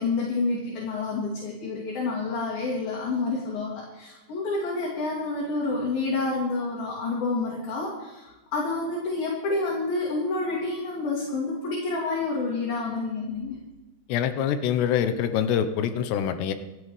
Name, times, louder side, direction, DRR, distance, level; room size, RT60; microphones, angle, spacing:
voice 1, 0.0-13.6, left 3 dB, 60° left, -5 dB, 4.3 m, -28 dB
voice 2, 14.1-16.5, left 9 dB, 85° left, 10 dB, 3.0 m, -25 dB
27.5 x 10.5 x 3.3 m, 1.0 s
omnidirectional pair, 4.9 m